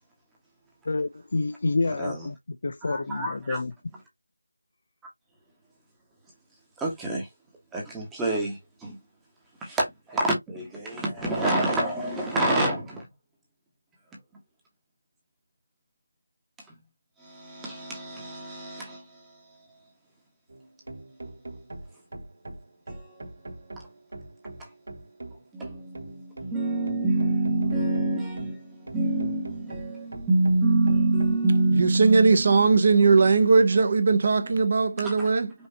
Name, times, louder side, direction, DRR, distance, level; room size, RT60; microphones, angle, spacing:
voice 1, 0.9-2.4 2.6-3.7, left 3 dB, 50° left, 0.4 m, -28 dB
voice 2, 2.9-3.6 6.8-7.3 7.7-9.0 9.6-13.1 17.2-19.2 22.9-23.3 24.6-24.7 25.5-32.7 33.0-33.2 34.5-34.6 34.9-35.5, right 2 dB, 5° right, 1.2 m, -27 dB
sound 1, 20.5-31.4, right 2 dB, 65° right, 2.0 m, -42 dB
voice 3, 31.7-35.5, right 4 dB, 40° right, 1.0 m, -19 dB
5.5 x 2.8 x 2.9 m
figure-of-eight pair, 170°, 0 cm